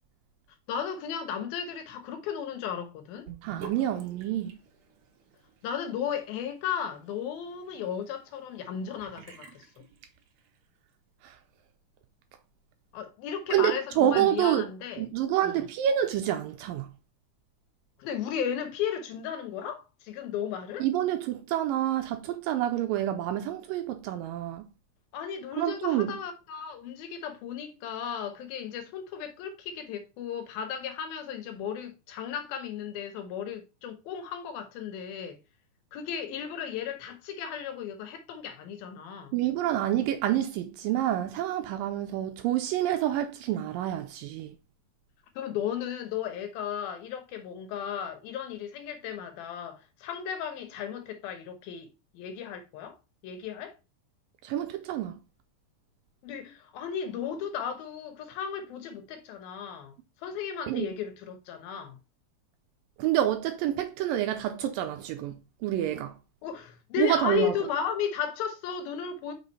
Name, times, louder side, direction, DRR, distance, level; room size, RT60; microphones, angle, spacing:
voice 1, 0.7-3.3 5.6-9.8 12.9-15.1 15.4-15.6 18.0-20.9 25.1-35.4 35.9-39.3 45.4-53.0 53.2-53.7 56.2-62.0 66.4-69.3, left 8 dB, 75° left, 2.8 m, -35 dB
Sink (filling or washing) / Bathtub (filling or washing), 3.2-10.6, right 7 dB, 60° right, 1.7 m, -50 dB
voice 2, 3.4-4.5 11.2-11.4 13.5-14.7 15.0-16.9 20.8-24.7 25.6-26.1 39.3-44.6 54.4-55.1 60.7-60.9 63.0-66.2 67.0-67.5, right 11 dB, 80° right, 2.1 m, -28 dB
6.0 x 5.0 x 4.1 m
omnidirectional pair, 4.4 m